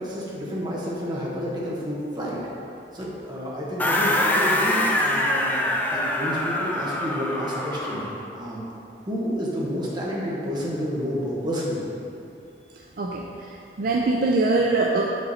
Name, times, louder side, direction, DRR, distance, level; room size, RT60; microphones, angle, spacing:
voice 1, 0.0-2.4 2.9-8.1 8.3-8.6 9.0-11.9, equal, 25° right, -5 dB, 1.2 m, -30 dB
sound 1, 3.8-8.2, left 1 dB, 10° left, 0.5 m, -24 dB
voice 2, 13.0-15.0, right 3 dB, 55° right, -1 dB, 0.4 m, -23 dB
6.0 x 5.2 x 4.2 m, 2.7 s
head